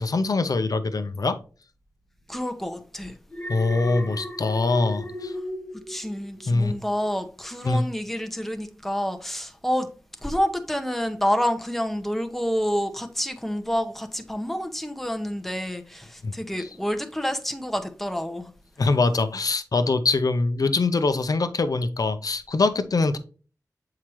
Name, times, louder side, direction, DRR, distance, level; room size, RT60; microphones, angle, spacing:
voice 1, 0.0-1.4 3.5-5.3 6.5-6.7 7.6-7.8 16.2-16.3 16.6-16.7 18.8-23.2, left 3 dB, 70° left, 0.7 m, -23 dB
voice 2, 2.3-3.2 5.7-9.9 10.2-18.5, equal, 5° left, 0.9 m, -28 dB
Alarm, 3.3-6.6 7.0-7.3, left 1 dB, 20° left, 1.6 m, -35 dB
7.4 x 4.8 x 3.1 m
cardioid pair, 45°, 7 cm